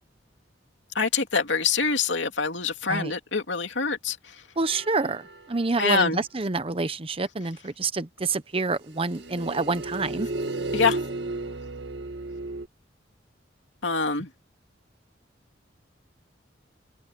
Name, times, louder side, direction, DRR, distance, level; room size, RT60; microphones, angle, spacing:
voice 1, 0.9-4.4 5.8-6.2 10.7-11.0 13.8-14.3, left 5 dB, 85° left, 2.7 m, -25 dB
voice 2, 4.6-10.3, right 3 dB, 30° right, 0.9 m, -27 dB
sound 1, 4.7-5.7 9.0-12.7, right 2 dB, 65° right, 2.3 m, -33 dB
head